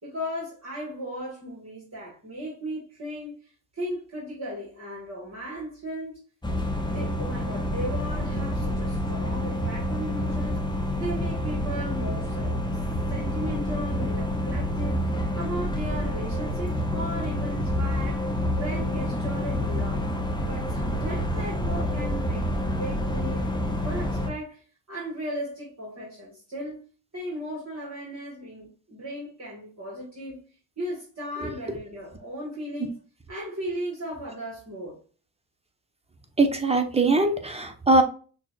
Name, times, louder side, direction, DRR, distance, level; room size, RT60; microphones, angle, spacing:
voice 1, 0.0-3.4 3.7-6.3 6.8-10.6 10.9-12.6 13.1-15.0 15.4-18.3 18.5-20.1 20.4-24.6 24.9-26.8 27.1-30.4 30.8-33.0 33.3-35.0, equal, 35° right, 2.0 m, -36 dB
sound 1, 6.4-24.3, left 1 dB, 10° left, 0.9 m, -28 dB
voice 2, 36.4-38.0, right 2 dB, 15° right, 1.0 m, -21 dB
5.9 x 2.5 x 2.4 m
supercardioid pair, 50°, 46 cm